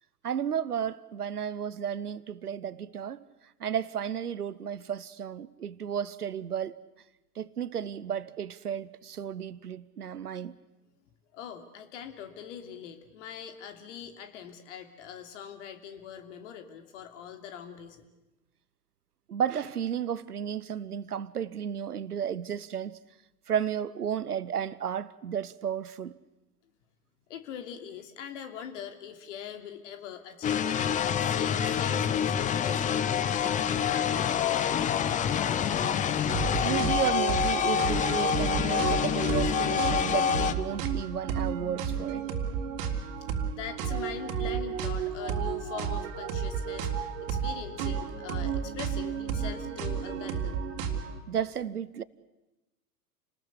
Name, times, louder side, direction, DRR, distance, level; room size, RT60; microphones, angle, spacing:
voice 1, 0.2-3.2 3.6-6.8 7.4-10.6 19.3-23.0 23.5-26.2 31.6-31.7 36.6-42.2 51.3-52.0, right 8 dB, 70° right, 1.0 m, -33 dB
voice 2, 11.0-18.0 27.3-34.7 42.9-50.6, left 8 dB, 50° left, 3.0 m, -43 dB
sound 1, 30.4-40.5, left 8 dB, 15° left, 0.9 m, -27 dB
sound 2, 36.3-51.2, right 7 dB, 40° right, 3.3 m, -32 dB
29.0 x 20.0 x 8.4 m
figure-of-eight pair, 95°, 47 cm